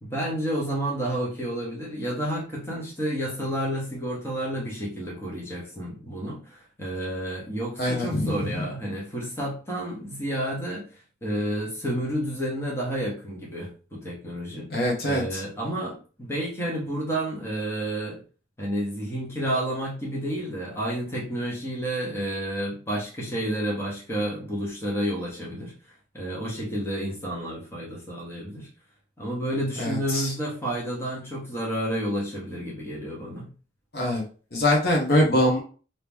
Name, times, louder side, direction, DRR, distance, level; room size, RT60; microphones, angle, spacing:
voice 1, 0.0-10.9 11.2-14.7 15.0-18.2 18.6-25.7 26.1-28.7 29.2-33.5, right 1 dB, 15° left, -4 dB, 1.1 m, -30 dB
voice 2, 7.8-8.5 14.7-15.4 29.8-30.3 33.9-34.2 34.5-35.6, left 1 dB, 55° left, -1 dB, 1.0 m, -23 dB
3.0 x 2.8 x 3.5 m, 0.38 s
head